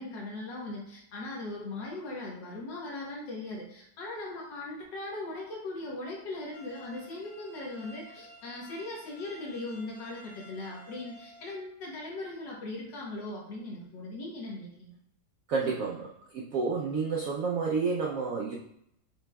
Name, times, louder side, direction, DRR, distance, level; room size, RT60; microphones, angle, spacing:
voice 1, 0.0-15.0, left 2 dB, 70° left, -3 dB, 1.7 m, -39 dB
sound 1, 6.5-11.5, left 1 dB, 55° left, 1.4 m, -52 dB
voice 2, 15.5-18.5, right 4 dB, 85° right, -2 dB, 0.7 m, -30 dB
6.6 x 3.1 x 2.2 m, 0.76 s
omnidirectional pair, 2.0 m